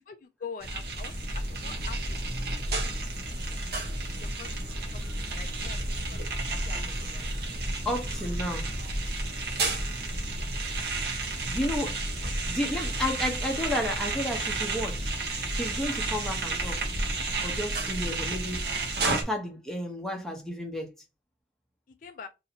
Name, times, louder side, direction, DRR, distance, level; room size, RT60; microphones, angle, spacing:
voice 1, 0.1-2.5 2.8-3.0 4.2-4.6 4.9-5.0 5.3-5.8 6.1-6.2 6.6-7.3 22.0-22.3, left 6 dB, 45° left, 0.3 m, -44 dB
sound 1, 0.6-19.2, right 2 dB, 60° right, 1.0 m, -31 dB
voice 2, 7.8-8.7 11.5-12.0 12.5-15.1 15.6-16.9 17.4-18.6 19.0-20.9, left 1 dB, 5° left, 0.8 m, -32 dB
2.8 x 2.8 x 4.2 m
head